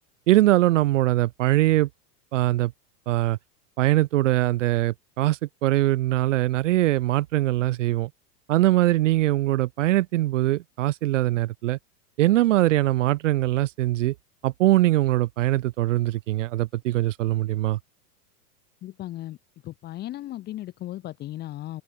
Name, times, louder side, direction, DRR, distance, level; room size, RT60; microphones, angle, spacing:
voice 1, 0.3-1.9 2.3-2.7 3.1-3.4 3.8-8.1 8.5-11.8 12.2-14.1 14.4-17.8, right 16 dB, 50° right, 2.4 m, -22 dB
voice 2, 18.8-19.4 19.6-21.8, left 14 dB, 20° left, 4.8 m, -36 dB
open air
supercardioid pair, 180°, 48 cm